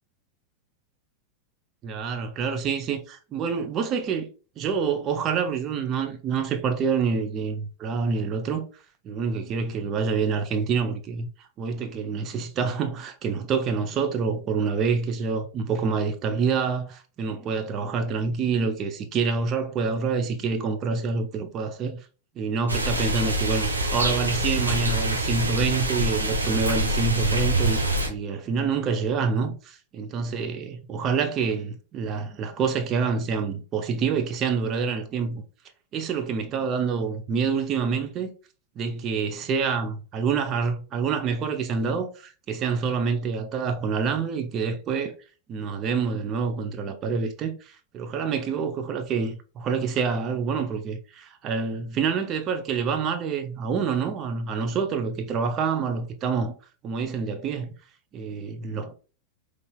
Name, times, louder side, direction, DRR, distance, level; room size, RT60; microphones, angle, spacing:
voice 1, 1.8-4.3 4.6-8.7 9.0-11.3 11.6-22.0 22.4-35.4 35.9-38.3 38.8-45.1 45.5-56.5 56.8-57.7 58.1-58.9, right 5 dB, 30° right, 0.8 m, -27 dB
sound 1, 22.7-28.1, right 1 dB, 80° right, 0.9 m, -25 dB
5.5 x 3.3 x 2.4 m
figure-of-eight pair, 90°, 0 cm